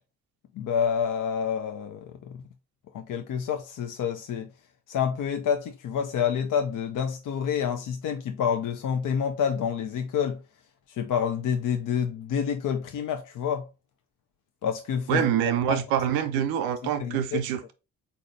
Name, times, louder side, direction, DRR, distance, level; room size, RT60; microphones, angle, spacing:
voice 1, 0.6-2.4 2.9-4.5 4.9-10.4 10.9-13.6 14.6-15.3 15.7-15.8 17.0-17.4, left 7 dB, 60° left, 0.6 m, -28 dB
voice 2, 15.1-17.7, right 10 dB, 85° right, 0.6 m, -26 dB
4.1 x 2.6 x 4.0 m
hypercardioid pair, 45°, 35 cm